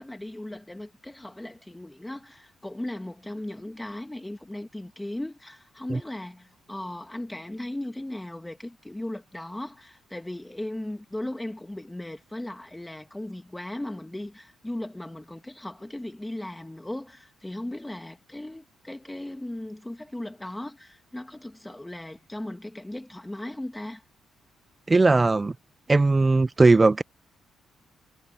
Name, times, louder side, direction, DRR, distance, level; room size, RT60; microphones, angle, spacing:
voice 1, 0.0-24.0, left 1 dB, 10° left, 2.0 m, -37 dB
voice 2, 24.9-25.5 25.9-27.0, right 3 dB, 25° right, 0.3 m, -19 dB
cardioid pair, 90°, 0 cm